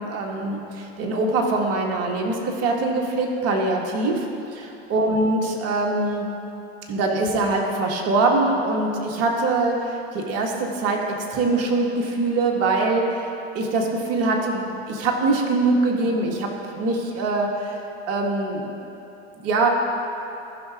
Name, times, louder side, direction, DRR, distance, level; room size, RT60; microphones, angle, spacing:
voice 1, 0.0-6.3 6.9-11.0 11.3-13.2 13.5-17.7 18.1-18.7 19.4-19.7, right 2 dB, 50° right, 1 dB, 1.7 m, -23 dB
14.5 x 5.7 x 3.6 m, 3.0 s
hypercardioid pair, 100°, 32 cm